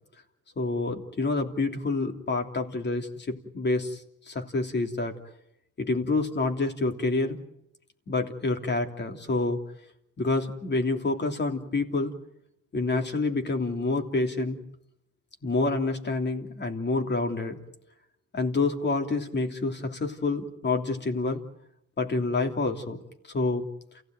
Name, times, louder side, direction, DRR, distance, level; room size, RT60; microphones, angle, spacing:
voice 1, 0.6-5.2 5.8-7.4 8.1-9.6 10.2-12.1 12.7-14.6 15.4-17.6 18.3-21.4 22.0-23.7, left 3 dB, 35° left, 5 dB, 3.1 m, -28 dB
28.5 x 16.5 x 9.2 m, 0.78 s
cardioid pair, 90°, 30 cm